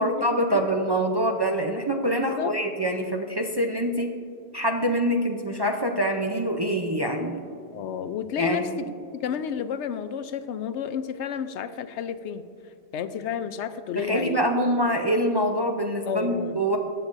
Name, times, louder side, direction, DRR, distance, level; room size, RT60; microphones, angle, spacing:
voice 1, 0.0-4.1 4.5-7.4 8.4-8.9 14.0-16.8, equal, 30° right, 1 dB, 0.5 m, -25 dB
voice 2, 2.1-2.6 7.7-8.7 9.1-12.4 12.9-14.4 16.1-16.6, left 8 dB, 90° left, 11 dB, 0.9 m, -31 dB
18.5 x 7.7 x 2.6 m, 2.4 s
omnidirectional pair, 1.1 m